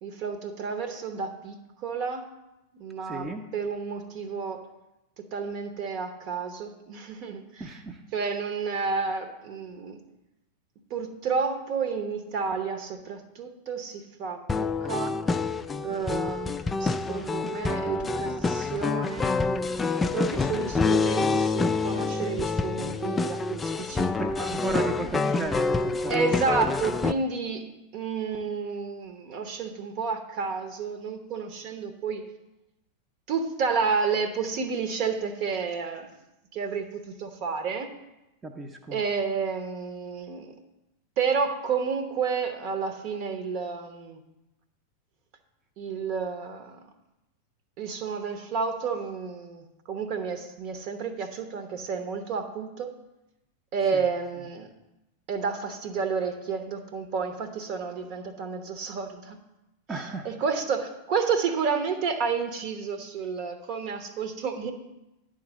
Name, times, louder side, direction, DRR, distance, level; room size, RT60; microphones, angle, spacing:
voice 1, 0.0-2.2 2.7-3.3 3.5-4.7 5.2-7.7 8.1-10.0 10.9-15.2 15.8-19.4 20.1-24.1 26.1-32.2 33.3-36.1 36.5-37.9 38.9-40.6 41.2-44.2 45.8-46.8 47.8-52.9 53.7-54.7 55.3-59.4 59.9-64.7, right 5 dB, 40° right, 8 dB, 0.9 m, -31 dB
voice 2, 3.0-3.4 7.6-8.0 24.2-26.4 38.4-39.0 53.9-54.0 59.9-60.3, right 3 dB, 15° right, 3 dB, 0.7 m, -34 dB
sound 1, 14.5-27.1, left 4 dB, 15° left, 0.3 m, -27 dB
10.5 x 3.9 x 6.3 m, 0.95 s
figure-of-eight pair, 90°, 0 cm